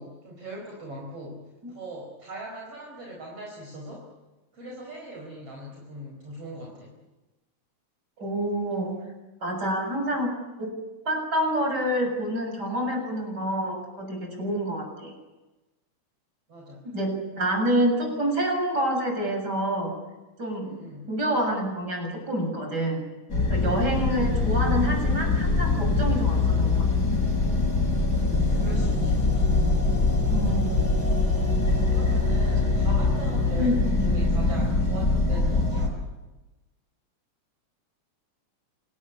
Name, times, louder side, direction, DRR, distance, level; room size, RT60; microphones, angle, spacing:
voice 1, 0.0-4.1 4.5-6.9 16.5-16.8 20.6-21.1 28.0-29.2 31.6-36.0, right 1 dB, 50° right, -1 dB, 5.6 m, -40 dB
voice 2, 8.2-9.0 9.4-10.7 11.0-15.1 16.8-19.9 20.4-20.8 21.1-23.0 23.5-26.8 30.3-30.8 33.6-33.7, right 1 dB, 30° right, 4 dB, 7.5 m, -27 dB
sound 1, 23.3-35.9, left 3 dB, 30° left, 6.6 m, -23 dB
27.5 x 19.5 x 10.0 m, 1.1 s
omnidirectional pair, 3.5 m